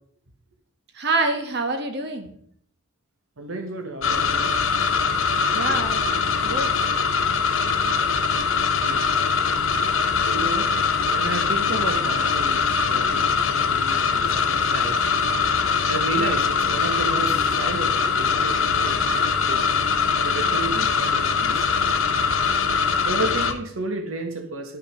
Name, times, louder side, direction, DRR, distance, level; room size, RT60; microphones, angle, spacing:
voice 1, 0.9-2.3 5.5-6.0 6.4-6.7, right 3 dB, 55° right, 6 dB, 1.5 m, -25 dB
voice 2, 3.4-4.5 5.5-5.8 8.8-9.2 10.2-10.8 11.1-15.1 15.9-19.7 20.2-21.6 23.0-24.8, right 2 dB, 80° right, 5 dB, 1.2 m, -32 dB
sound 1, 4.0-23.5, left 5 dB, 75° left, 1.0 m, -22 dB
11.5 x 5.8 x 5.6 m, 0.64 s
head